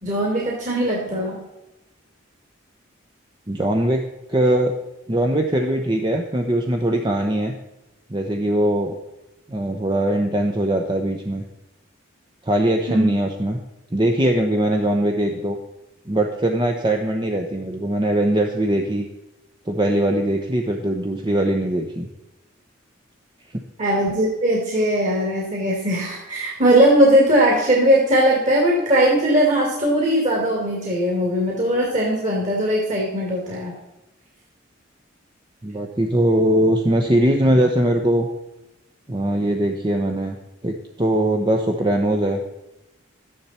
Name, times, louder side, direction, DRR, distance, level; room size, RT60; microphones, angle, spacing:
voice 1, 0.0-1.4 12.9-13.0 23.8-33.7, right 1 dB, 40° right, -2 dB, 2.5 m, -19 dB
voice 2, 3.5-4.0 4.3-4.7 5.1-7.5 8.1-8.9 9.5-11.4 12.5-13.6 13.9-15.6 16.1-19.0 19.7-22.1 35.6-38.3 39.1-40.4 40.6-42.4, right 1 dB, 25° right, 3 dB, 0.8 m, -21 dB
12.5 x 10.0 x 4.4 m, 0.98 s
head